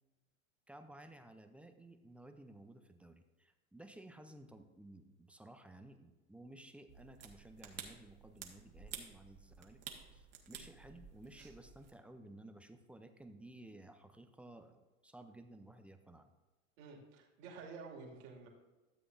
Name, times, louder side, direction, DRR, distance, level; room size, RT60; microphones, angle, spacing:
voice 1, 0.7-9.8 10.1-16.3, right 1 dB, 5° right, 7 dB, 0.5 m, -56 dB
sound 1, 6.9-11.9, right 7 dB, 35° right, 1.5 m, -52 dB
voice 2, 16.8-18.5, right 4 dB, 55° right, -1 dB, 2.5 m, -51 dB
13.0 x 7.8 x 2.6 m, 1.2 s
hypercardioid pair, 100°, 42 cm